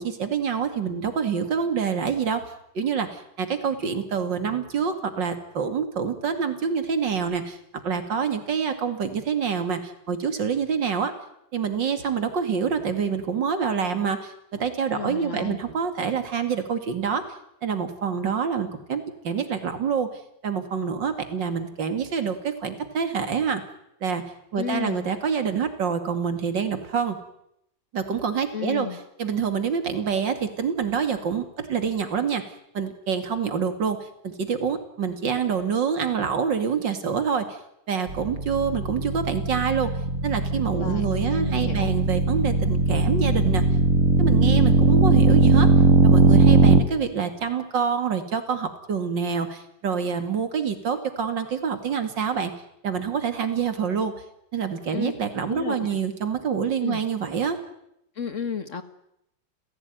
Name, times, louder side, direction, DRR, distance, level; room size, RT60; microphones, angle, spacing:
voice 1, 0.0-2.4 2.7-7.6 7.8-11.1 11.5-17.2 17.6-20.1 20.4-23.6 24.0-24.2 24.5-27.2 27.9-28.9 29.2-32.4 32.7-37.6 37.9-39.9 40.2-43.6 44.2-45.7 46.0-52.5 52.8-54.1 54.5-57.6, right 6 dB, 80° right, 8 dB, 3.0 m, -26 dB
voice 2, 14.9-15.6 24.6-25.0 28.5-29.0 40.8-41.9 54.9-55.1 55.5-55.9 56.8-57.0 58.2-58.8, left 7 dB, 45° left, 11 dB, 1.7 m, -32 dB
sound 1, 38.1-46.8, right 3 dB, 45° right, 1.8 m, -19 dB
29.5 x 16.0 x 9.4 m, 0.80 s
omnidirectional pair, 2.0 m